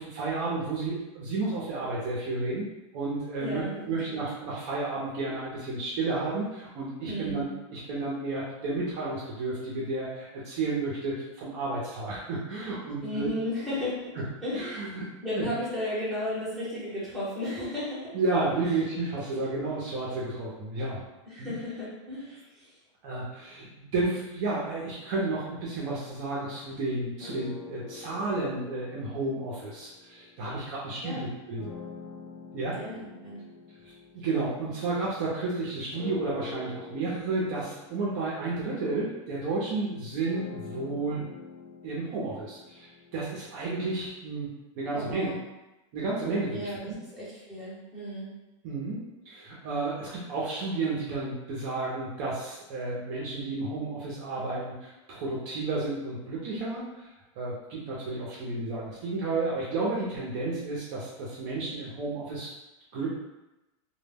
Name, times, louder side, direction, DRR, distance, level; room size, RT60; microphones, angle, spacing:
voice 1, 0.0-7.5 7.7-13.3 14.5-15.1 15.3-15.5 18.1-21.0 21.4-21.6 23.0-31.7 32.5-32.8 34.1-41.2 41.8-45.3 45.9-47.0 48.6-57.1 57.4-62.5 62.9-63.1, right 3 dB, 35° right, -6 dB, 0.5 m, -32 dB
voice 2, 3.4-4.2 7.1-7.5 13.0-14.1 14.4-14.9 15.2-18.1 18.6-18.8 21.3-22.7 31.0-31.2 32.8-33.4 44.9-45.4 46.5-48.3, left 1 dB, ahead, -11 dB, 0.7 m, -34 dB
sound 1, 27.2-30.8 31.6-35.3 35.9-43.9, left 4 dB, 85° left, 0.4 m, -46 dB
2.1 x 2.0 x 3.3 m, 1.0 s
supercardioid pair, 170°, 16 cm